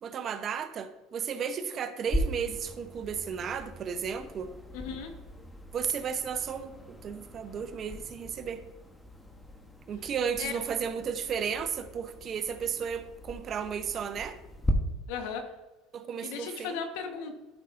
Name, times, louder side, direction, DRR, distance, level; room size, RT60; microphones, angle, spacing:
voice 1, 0.0-4.5 5.7-8.6 9.9-14.4 15.9-16.8, right 7 dB, 40° right, 10 dB, 0.7 m, -34 dB
sound 1, 2.1-14.7, equal, 10° left, 1.0 m, -39 dB
voice 2, 4.7-5.1 10.4-10.5 15.1-15.5 16.2-17.3, left 6 dB, 80° left, 5 dB, 1.2 m, -36 dB
12.5 x 5.5 x 2.6 m, 1.1 s
supercardioid pair, 110°, 0 cm